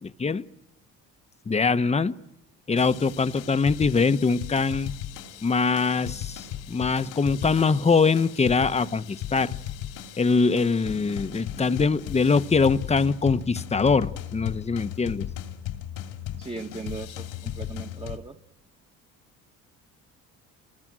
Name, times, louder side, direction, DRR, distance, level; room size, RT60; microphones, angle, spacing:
voice 1, 0.0-0.5 1.5-2.2 2.7-4.9 5.4-9.5 10.2-15.3, left 4 dB, 20° left, 1.0 m, -23 dB
sound 1, 2.8-18.2, left 11 dB, 85° left, 2.9 m, -37 dB
voice 2, 16.4-18.4, right 4 dB, 15° right, 1.4 m, -38 dB
29.5 x 21.5 x 6.2 m
cardioid pair, 90°, 31 cm